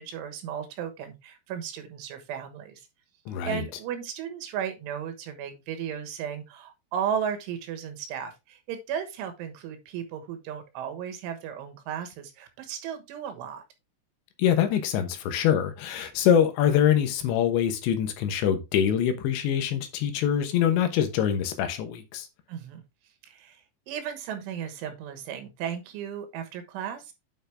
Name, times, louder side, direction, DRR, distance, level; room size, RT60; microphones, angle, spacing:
voice 1, 0.0-2.9 3.5-13.6 19.7-19.8 22.5-22.8 23.2-27.1, right 8 dB, 90° right, 3.9 m, -35 dB
voice 2, 3.3-3.6 14.4-22.3, left 9 dB, 75° left, 3.3 m, -24 dB
9.2 x 5.3 x 3.4 m
omnidirectional pair, 5.3 m